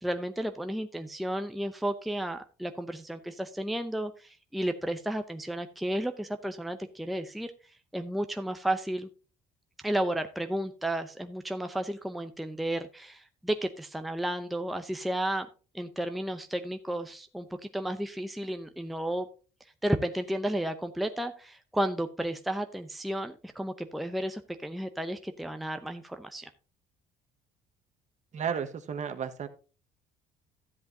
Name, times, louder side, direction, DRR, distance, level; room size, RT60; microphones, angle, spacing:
voice 1, 0.0-7.5 7.9-9.1 9.8-15.5 15.7-19.3 19.8-26.5, right 1 dB, ahead, 7 dB, 0.7 m, -33 dB
voice 2, 28.3-29.5, right 7 dB, 45° right, 9 dB, 1.3 m, -33 dB
13.0 x 7.9 x 2.7 m, 0.34 s
cardioid pair, 110°, 17 cm